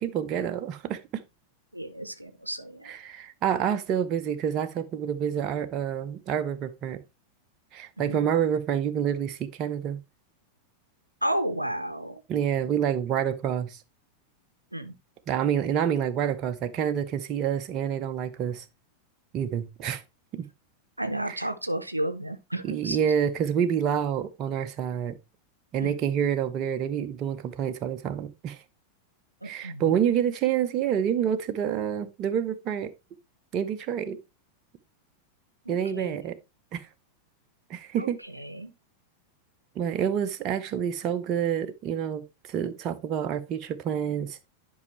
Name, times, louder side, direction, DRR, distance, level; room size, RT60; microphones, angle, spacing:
voice 1, 0.0-1.2 2.8-7.0 7.7-10.0 12.3-13.8 15.3-18.6 19.3-20.0 20.3-20.5 21.3-21.4 22.6-25.2 25.7-28.6 29.4-32.9 33.5-34.2 35.7-36.4 36.7-36.9 37.7-38.2 39.7-44.5, right 9 dB, 35° right, 0.9 m, -28 dB
voice 2, 1.7-2.9 8.0-8.2 11.2-12.2 14.7-14.9 21.0-23.0 25.8-25.9 29.4-29.9 35.6-36.2 38.0-38.7, right 1 dB, 85° right, 0.8 m, -32 dB
11.0 x 5.6 x 3.1 m
figure-of-eight pair, 90°, 0 cm